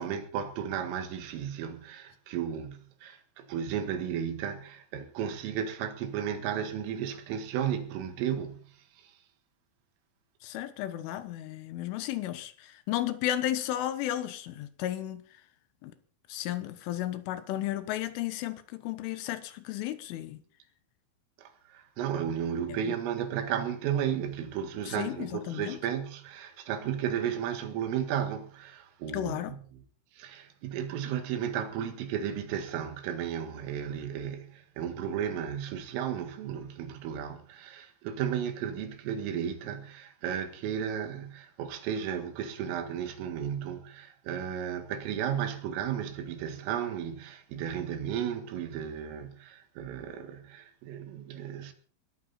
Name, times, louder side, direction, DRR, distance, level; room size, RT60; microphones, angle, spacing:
voice 1, 0.0-9.1 21.4-29.6 30.1-51.7, right 9 dB, 90° right, 4.5 m, -34 dB
voice 2, 10.4-15.2 15.8-15.9 16.3-20.4 22.7-23.0 24.9-25.8 29.1-29.5, left 13 dB, 80° left, 3.6 m, -34 dB
20.0 x 13.5 x 4.3 m
omnidirectional pair, 5.7 m